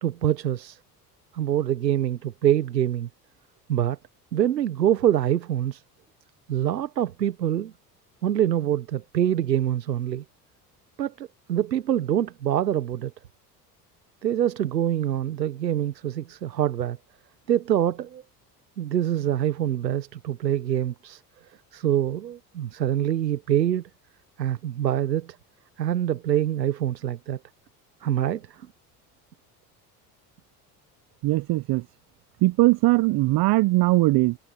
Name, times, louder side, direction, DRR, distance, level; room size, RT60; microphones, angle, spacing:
voice 1, 0.0-0.8 1.3-3.1 3.7-4.0 4.3-5.8 6.5-7.7 8.2-10.2 11.0-13.1 14.2-17.0 17.5-18.2 18.8-21.2 21.7-23.8 24.4-25.4 25.8-27.4 28.0-28.7, right 11 dB, 90° right, 1.2 m, -25 dB
voice 2, 31.2-31.8 32.4-34.4, right 20 dB, 50° right, 0.7 m, -20 dB
hypercardioid pair, 60°, 49 cm